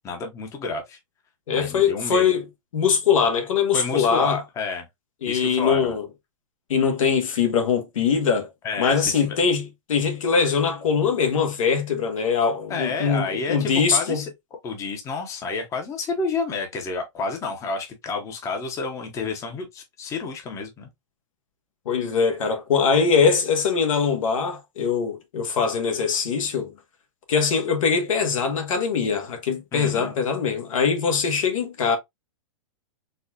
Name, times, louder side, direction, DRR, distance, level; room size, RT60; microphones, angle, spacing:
voice 1, 0.0-1.0 1.5-2.2 3.7-4.9 5.3-6.0 8.6-9.4 12.7-14.3 14.6-20.9 29.7-30.1, left 4 dB, 20° left, 0.7 m, -30 dB
voice 2, 1.5-2.4 2.7-4.4 5.2-6.0 6.7-8.5 8.8-14.2 21.9-26.7 27.3-32.0, left 6 dB, 80° left, 1.2 m, -22 dB
4.1 x 2.3 x 2.6 m
hypercardioid pair, 145°, 17 cm